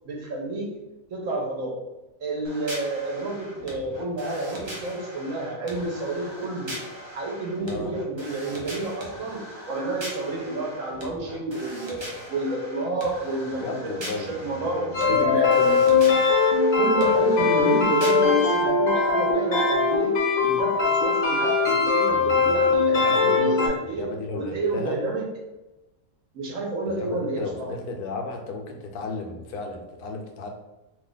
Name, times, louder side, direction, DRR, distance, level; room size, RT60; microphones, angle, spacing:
voice 1, 0.0-0.7 1.1-1.7 2.2-6.7 7.1-12.0 12.3-15.6 16.8-20.1 20.4-24.1 24.3-25.2 26.3-27.7, right 2 dB, 65° right, -2 dB, 1.1 m, -30 dB
sound 1, 2.4-18.6, equal, 45° right, 0.3 m, -40 dB
voice 2, 13.5-16.2 22.1-25.0 26.9-30.5, left 3 dB, 85° left, 3 dB, 1.1 m, -35 dB
sound 2, 14.9-23.7, left 4 dB, 55° left, 0.5 m, -21 dB
2.8 x 2.4 x 3.8 m, 1.0 s
omnidirectional pair, 1.6 m